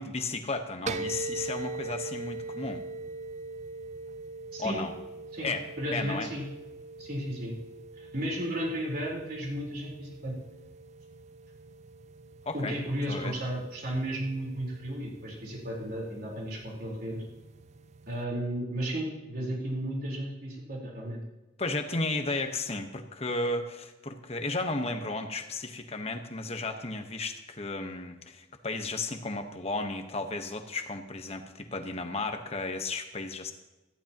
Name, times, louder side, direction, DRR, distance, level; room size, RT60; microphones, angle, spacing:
voice 1, 0.0-2.8 4.6-4.9 5.4-5.6 5.9-6.3 12.4-12.8 13.1-13.3 21.6-33.5, left 2 dB, 35° left, 6 dB, 1.2 m, -34 dB
sound 1, 0.9-18.2, right 3 dB, 40° right, 0.4 m, -42 dB
voice 2, 5.3-6.5 7.0-7.6 8.0-10.3 12.5-17.2 18.1-21.2, right 1 dB, 55° right, -4 dB, 4.2 m, -34 dB
18.0 x 14.5 x 3.0 m, 1.1 s
head